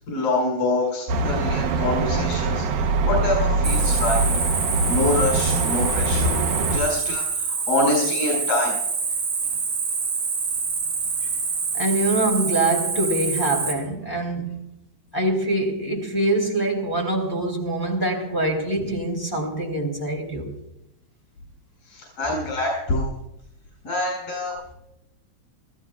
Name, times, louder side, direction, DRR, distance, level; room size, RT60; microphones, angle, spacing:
voice 1, 0.1-4.2 4.9-6.4 6.7-8.7 21.9-23.1 23.8-24.5, left 2 dB, 85° left, -1 dB, 6.0 m, -25 dB
sound 1, 1.1-6.8, right 2 dB, 80° right, 2.5 m, -23 dB
Cricket, 3.6-13.7, right 5 dB, 60° right, 4.2 m, -26 dB
voice 2, 11.7-14.6 15.1-20.6, right 2 dB, 5° left, 0 dB, 2.5 m, -24 dB
27.5 x 14.5 x 2.3 m, 0.83 s
omnidirectional pair, 3.5 m